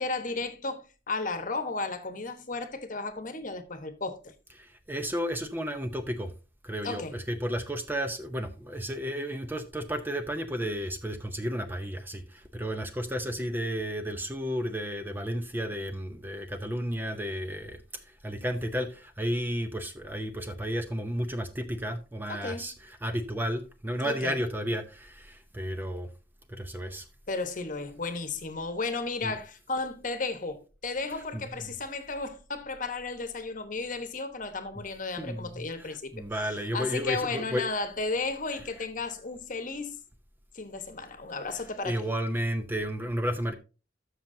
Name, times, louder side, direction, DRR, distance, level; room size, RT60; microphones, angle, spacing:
voice 1, 0.0-4.3 6.8-7.2 22.3-22.7 24.0-24.4 27.3-36.1 36.4-40.0 40.5-42.1, left 3 dB, 45° left, 1.1 m, -34 dB
voice 2, 4.6-6.3 6.6-17.8 18.2-26.1 26.5-27.0 29.2-29.3 31.3-31.7 35.2-37.7 41.8-43.5, equal, 10° right, 0.6 m, -32 dB
13.0 x 5.9 x 2.7 m
head